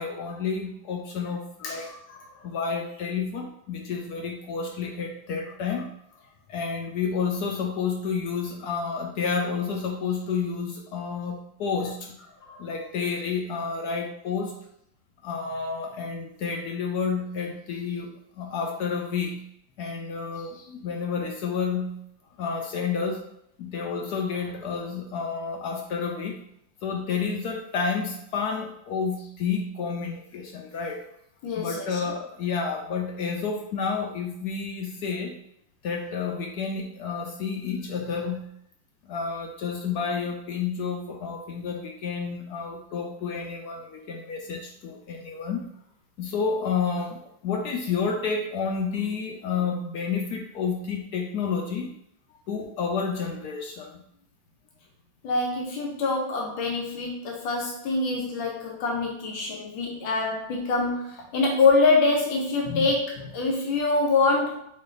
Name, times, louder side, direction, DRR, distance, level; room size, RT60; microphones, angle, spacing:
voice 1, 0.0-1.9 2.4-5.9 6.5-12.2 12.6-14.6 15.2-19.5 19.8-22.0 22.4-23.2 23.6-26.4 26.8-31.1 31.6-35.4 35.8-38.5 39.0-45.7 46.2-51.9 52.5-54.0 62.7-62.9, left 5 dB, 70° left, 1 dB, 1.0 m, -30 dB
voice 2, 1.6-2.4 12.4-12.7 31.4-32.1 55.2-64.6, left 3 dB, 90° left, 0 dB, 1.5 m, -25 dB
3.9 x 3.2 x 3.8 m, 0.74 s
omnidirectional pair, 2.1 m